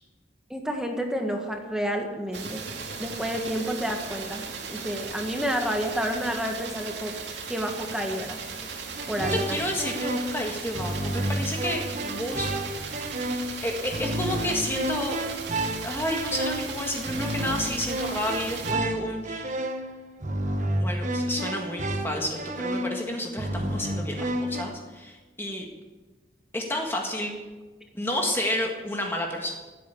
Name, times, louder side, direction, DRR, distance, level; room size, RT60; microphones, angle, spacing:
voice 1, 0.5-2.6 3.0-4.4 4.7-7.1 7.5-8.4 9.1-9.6, equal, 5° right, 3 dB, 1.7 m, -29 dB
sound 1, 2.3-18.7, right 5 dB, 80° right, 2.4 m, -37 dB
sound 2, 9.0-24.6, right 1 dB, 40° right, 1.2 m, -31 dB
voice 2, 9.2-13.0 13.6-15.2 15.8-19.5 20.8-25.7 26.5-27.4 27.9-29.6, left 1 dB, 15° left, 1 dB, 1.7 m, -31 dB
15.5 x 8.6 x 8.6 m, 1.3 s
head